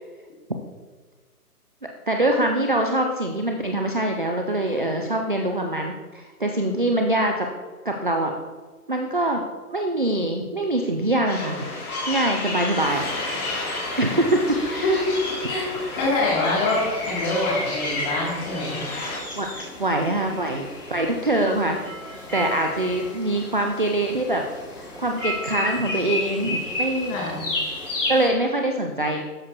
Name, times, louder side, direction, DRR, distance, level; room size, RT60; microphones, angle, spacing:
voice 1, 2.1-7.5 7.9-8.3 8.9-9.4 9.7-11.7 12.1-13.1 14.0-15.0 19.4-19.5 19.8-21.8 22.3-24.4 24.7-27.2 28.1-29.2, right 1 dB, 35° right, 3 dB, 0.4 m, -24 dB
sound 1, 11.3-19.2, left 2 dB, 65° left, 2.5 m, -32 dB
sound 2, 12.8-28.3, left 2 dB, 50° left, 2.8 m, -33 dB
voice 2, 15.9-18.8 27.1-27.4, left 2 dB, 25° left, -4 dB, 2.6 m, -25 dB
sound 3, 21.8-27.4, right 3 dB, ahead, 0.7 m, -38 dB
12.5 x 6.3 x 2.9 m, 1.4 s
hypercardioid pair, 150°, 48 cm